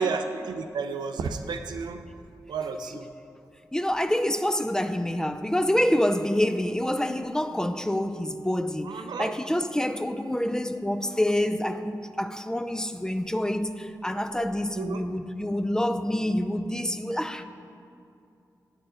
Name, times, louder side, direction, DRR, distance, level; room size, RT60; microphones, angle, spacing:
voice 1, 0.0-2.0 2.5-3.1 8.8-9.3 14.8-15.0, right 5 dB, 90° right, 0.3 m, -31 dB
voice 2, 3.7-17.4, left 1 dB, 10° left, 0.3 m, -27 dB
9.4 x 4.6 x 3.7 m
cardioid pair, 60°, 7 cm